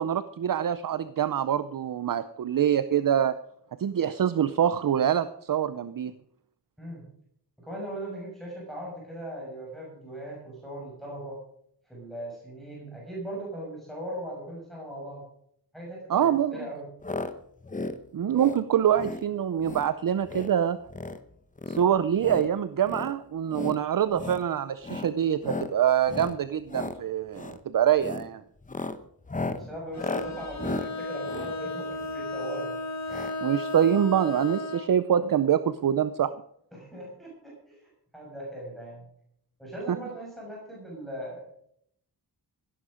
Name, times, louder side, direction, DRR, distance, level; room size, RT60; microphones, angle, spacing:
voice 1, 0.0-3.4 3.8-6.1 16.1-16.6 18.1-20.8 21.7-28.4 33.4-36.3 39.9-40.0, right 9 dB, 55° right, 13 dB, 0.6 m, -25 dB
voice 2, 6.8-7.1 7.6-11.4 11.9-15.2 15.7-16.9 29.5-32.8 36.7-39.1 39.6-41.5, right 1 dB, ahead, -5 dB, 6.3 m, -39 dB
sound 1, 17.0-17.3 17.6-18.0 18.3-18.6 19.0-19.2 19.6-19.9 20.2-20.5 20.8-21.2 21.6-22.5 22.8-23.1 23.5-23.8 24.1-24.4 24.8-25.1 25.4-25.7 26.0-26.4 26.6-27.0 27.3-27.6 28.0-28.3 28.6-32.3 33.1-33.3 33.6-33.7 33.9-34.0, left 3 dB, 20° left, 0.9 m, -35 dB
Bowed string instrument, 29.9-34.9, left 2 dB, 40° left, 1.7 m, -34 dB
17.0 x 10.0 x 5.0 m, 0.70 s
wide cardioid pair, 130°, 41 cm